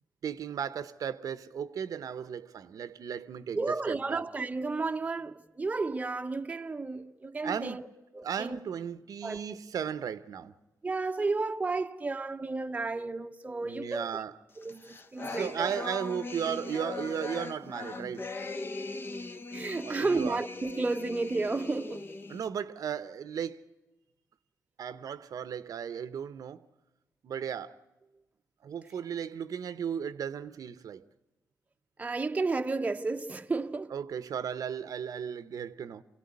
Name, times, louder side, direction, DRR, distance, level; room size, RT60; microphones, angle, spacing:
voice 1, 0.2-4.3 7.4-7.8 8.2-10.5 13.6-14.4 15.2-18.3 19.8-20.4 22.3-23.6 24.8-26.6 27.2-27.8 28.6-31.0 33.9-36.0, right 8 dB, 75° right, 0.8 m, -35 dB
voice 2, 3.5-7.9 8.1-8.6 9.2-9.4 10.8-14.2 14.6-15.7 19.5-22.0 32.0-33.9, right 3 dB, 20° right, 0.8 m, -32 dB
sound 1, 14.6-22.5, left 3 dB, 40° left, 1.0 m, -40 dB
24.5 x 17.0 x 9.6 m
wide cardioid pair, 115°, 6 cm